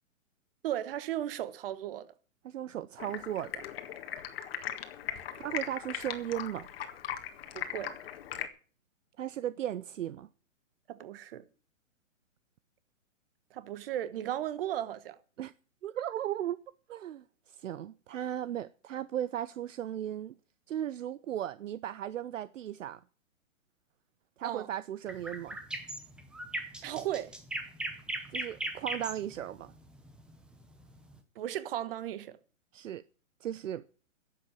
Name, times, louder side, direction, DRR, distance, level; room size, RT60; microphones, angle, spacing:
voice 1, 0.6-2.1 7.5-7.9 10.9-11.4 13.5-15.2 24.4-24.7 26.8-27.3 31.3-32.4, right 12 dB, 45° right, 1.3 m, -35 dB
voice 2, 2.4-3.7 5.4-6.7 9.2-10.3 15.4-15.5 15.8-16.6 16.9-20.4 20.7-23.0 24.4-25.6 28.3-29.7 32.7-33.0 33.4-33.8, right 11 dB, 70° right, 0.7 m, -36 dB
Stream, 3.0-8.5, left 10 dB, 45° left, 1.7 m, -39 dB
sound 1, 25.1-31.2, right 1 dB, ahead, 0.7 m, -38 dB
11.0 x 7.7 x 8.9 m
hypercardioid pair, 150°, 40 cm